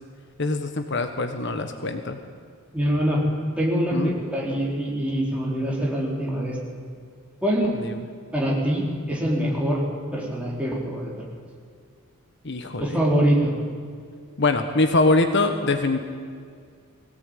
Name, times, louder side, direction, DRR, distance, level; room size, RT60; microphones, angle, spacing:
voice 1, 0.4-2.2 3.9-4.1 7.7-8.0 12.4-12.9 14.4-16.0, left 2 dB, 55° left, 6 dB, 1.4 m, -23 dB
voice 2, 2.7-3.2 3.6-6.6 7.4-7.7 8.3-9.8 10.1-11.1 12.8-13.5, equal, 5° right, -4 dB, 4.6 m, -24 dB
21.5 x 17.5 x 9.2 m, 2.2 s
head